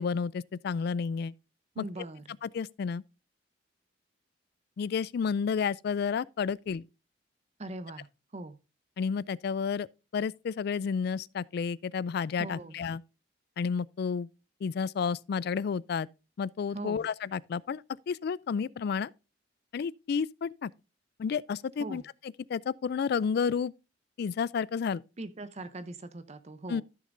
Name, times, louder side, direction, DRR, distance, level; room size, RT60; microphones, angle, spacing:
voice 1, 0.0-1.3 1.8-1.9 2.4-3.0 4.8-6.8 9.0-9.9 10.1-13.0 13.6-14.3 14.6-16.1 16.4-19.1 19.7-20.7 21.2-23.7 24.2-25.0 26.7-26.8, left 6 dB, 55° left, 0.3 m, -31 dB
voice 2, 1.8-2.2 7.6-8.1 8.3-8.6 12.4-12.7 16.7-17.1 21.8-22.0 25.2-26.8, right 2 dB, 35° right, 0.6 m, -40 dB
14.0 x 6.5 x 2.6 m
head